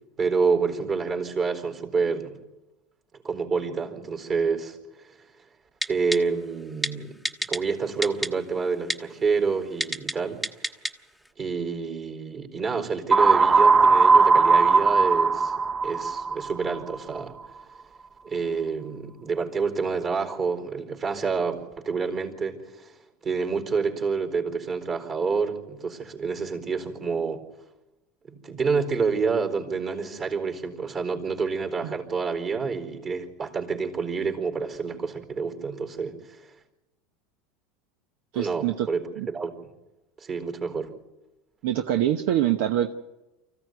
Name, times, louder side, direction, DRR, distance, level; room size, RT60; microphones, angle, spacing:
voice 1, 0.2-2.4 3.2-4.8 5.9-7.2 7.5-10.4 11.4-15.5 15.8-17.3 18.2-22.9 23.2-27.4 28.3-36.4 38.3-39.7 40.2-40.9, right 5 dB, 35° right, 5 dB, 4.3 m, -28 dB
Typing, 5.8-6.2 6.8-6.9 7.2-7.6 8.0-8.3 8.9-9.0 9.8-10.1 10.4-10.9 11.3-11.4, equal, 5° right, 1.2 m, -26 dB
sound 1, 13.1-17.0, right 4 dB, 20° right, 0.7 m, -18 dB
voice 2, 38.3-38.9 39.2-39.3 41.6-42.9, right 12 dB, 70° right, 7 dB, 1.0 m, -24 dB
24.5 x 15.0 x 9.4 m, 1.0 s
hypercardioid pair, 100°, 0 cm